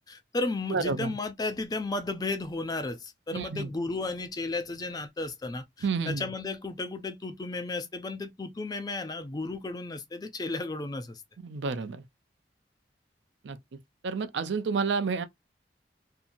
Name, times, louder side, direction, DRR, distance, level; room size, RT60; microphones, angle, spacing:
voice 1, 0.1-11.2, left 2 dB, 20° left, 0.4 m, -34 dB
voice 2, 0.7-1.1 3.3-3.7 5.8-6.3 11.4-12.0 13.4-13.6 14.0-15.2, right 5 dB, 85° right, 0.5 m, -30 dB
2.7 x 2.4 x 2.6 m
head